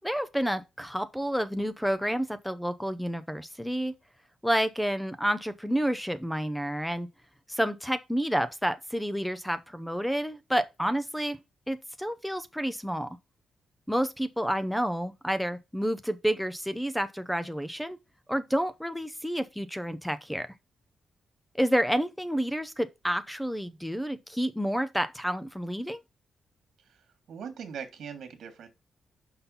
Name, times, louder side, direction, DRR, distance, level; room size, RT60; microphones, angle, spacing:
voice 1, 0.0-3.9 4.4-7.1 7.5-11.4 11.7-13.1 13.9-18.0 18.3-20.5 21.5-26.0, equal, ahead, 0.7 m, -29 dB
voice 2, 26.9-28.7, right 7 dB, 70° right, 1.7 m, -41 dB
5.7 x 4.3 x 5.4 m
cardioid pair, 130°, 0 cm